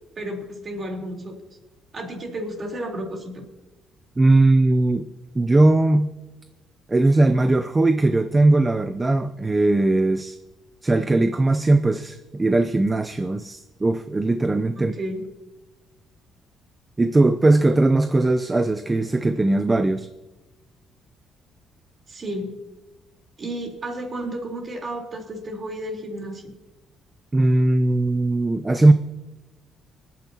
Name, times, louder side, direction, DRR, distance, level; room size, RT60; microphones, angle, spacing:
voice 1, 0.2-1.4 1.9-3.4 14.8-15.3 22.1-22.6 23.4-26.5, right 1 dB, 35° right, 1 dB, 3.8 m, -32 dB
voice 2, 4.2-5.1 5.3-6.1 6.9-10.4 10.8-14.9 17.0-20.1 27.3-28.9, right 2 dB, 15° right, 9 dB, 0.6 m, -19 dB
26.5 x 9.7 x 2.9 m, 1.1 s
cardioid pair, 125°, 0 cm